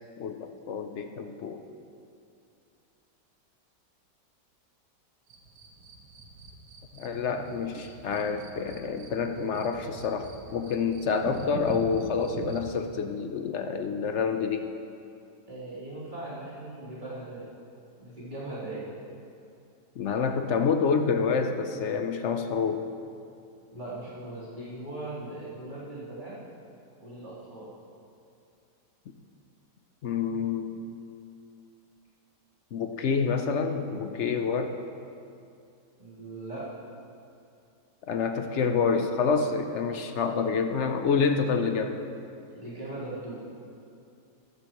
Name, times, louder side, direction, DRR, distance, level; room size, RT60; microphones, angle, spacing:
voice 1, 0.2-1.6 6.9-14.7 20.0-22.9 30.0-31.0 32.7-34.7 38.1-42.0, left 5 dB, 60° left, 6 dB, 0.7 m, -28 dB
sound 1, 5.3-12.8, right 3 dB, 70° right, 1.6 m, -43 dB
voice 2, 15.5-17.5 18.0-18.8 23.7-26.3 27.0-27.7 36.0-36.6 42.6-43.4, right 2 dB, 25° right, -10 dB, 3.6 m, -39 dB
15.0 x 13.5 x 3.1 m, 2.5 s
omnidirectional pair, 1.8 m